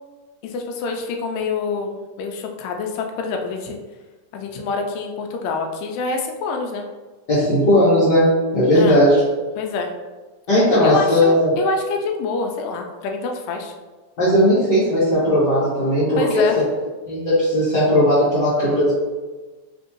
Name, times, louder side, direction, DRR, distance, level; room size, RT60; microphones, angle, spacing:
voice 1, 0.4-3.8 4.3-6.9 8.7-9.0 9.6-9.9 10.8-13.7 16.2-16.6, left 4 dB, 85° left, 3 dB, 2.2 m, -26 dB
voice 2, 7.3-9.2 10.5-11.5 14.2-16.4 17.1-18.9, equal, 70° left, -12 dB, 1.0 m, -17 dB
5.3 x 2.8 x 2.9 m, 1.3 s
omnidirectional pair, 3.9 m